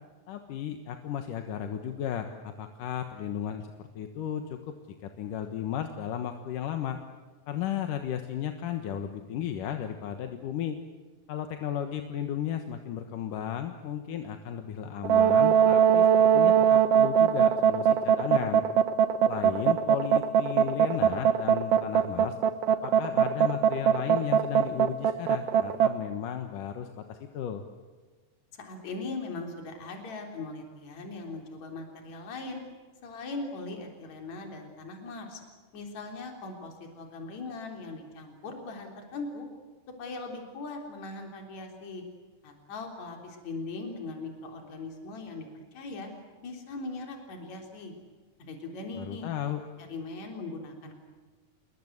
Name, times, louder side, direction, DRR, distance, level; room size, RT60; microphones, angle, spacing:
voice 1, 0.3-4.8 5.0-7.0 7.5-10.8 11.3-18.6 19.3-22.4 22.8-27.6 48.9-49.6, left 9 dB, 70° left, 6 dB, 2.8 m, -34 dB
sound 1, 15.0-25.9, right 8 dB, 65° right, 1.6 m, -21 dB
voice 2, 28.5-32.6 33.0-35.4 35.7-39.5 40.0-42.0 42.4-46.1 46.4-47.9 48.4-49.3 49.8-51.0, left 3 dB, 50° left, 2 dB, 4.9 m, -40 dB
28.0 x 22.5 x 8.1 m, 1.4 s
omnidirectional pair, 4.1 m